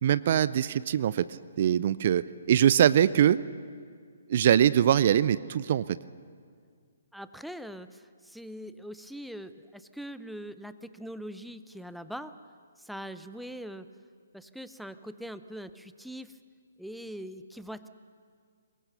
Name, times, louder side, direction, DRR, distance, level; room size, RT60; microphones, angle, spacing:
voice 1, 0.0-1.3 1.6-3.4 4.3-5.8, right 10 dB, 45° right, 18 dB, 0.5 m, -22 dB
voice 2, 7.1-12.3 12.8-13.9 14.3-16.4 16.8-17.9, equal, ahead, 12 dB, 0.6 m, -42 dB
23.5 x 21.0 x 6.9 m, 2.1 s
figure-of-eight pair, 130°, 0 cm